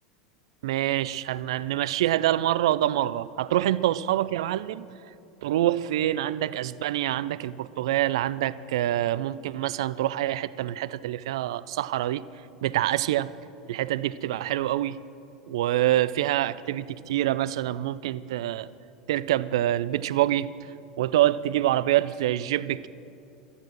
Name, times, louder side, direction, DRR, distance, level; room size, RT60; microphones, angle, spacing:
voice 1, 0.6-4.9 5.4-12.2 12.6-13.3 13.7-15.0 15.5-18.7 19.1-20.5 21.0-22.9, right 13 dB, 70° right, 0.4 m, -26 dB
13.5 x 9.6 x 7.5 m
hypercardioid pair, 85°, 3 cm